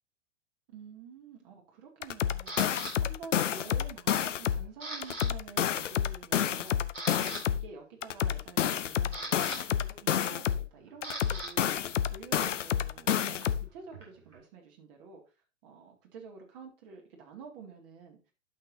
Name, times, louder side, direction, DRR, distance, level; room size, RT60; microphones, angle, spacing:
voice 1, 0.7-11.9 12.1-15.2 15.6-18.2, right 5 dB, 45° right, 2 dB, 2.3 m, -49 dB
sound 1, 2.0-4.7 5.0-7.7 8.0-10.7 11.0-13.7, left 9 dB, 75° left, 0.7 m, -29 dB
Camera, 2.5-2.9 3.5-3.9 4.2-5.3 5.5-5.7 6.3-6.4 6.8-7.4 8.6-11.5 11.8-14.4, right 2 dB, 85° right, 4.3 m, -42 dB
11.5 x 6.0 x 2.7 m, 0.31 s
figure-of-eight pair, 105°, 37 cm